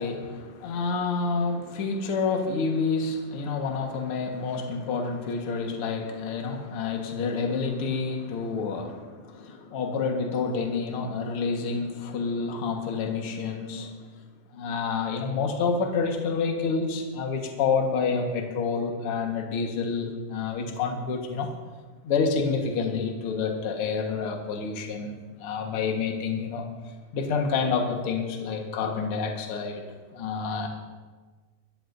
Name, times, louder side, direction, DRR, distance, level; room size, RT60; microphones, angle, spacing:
voice 1, 0.0-13.9 14.5-21.5 22.0-26.7 27.1-29.8 30.1-30.7, left 5 dB, 50° left, 2 dB, 1.9 m, -28 dB
24.5 x 13.5 x 2.7 m, 1.4 s
omnidirectional pair, 4.0 m